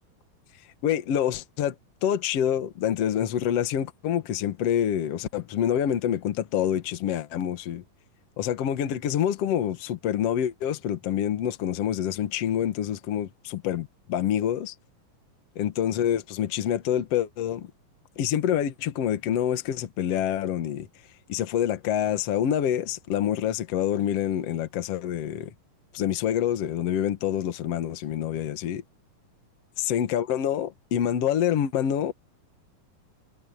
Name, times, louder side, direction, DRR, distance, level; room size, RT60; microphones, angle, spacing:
voice 1, 0.8-1.8 2.0-7.8 8.4-14.7 15.6-17.7 18.2-20.9 21.3-25.5 25.9-28.8 29.9-32.1, left 10 dB, 55° left, 2.0 m, -26 dB
omnidirectional pair, 4.1 m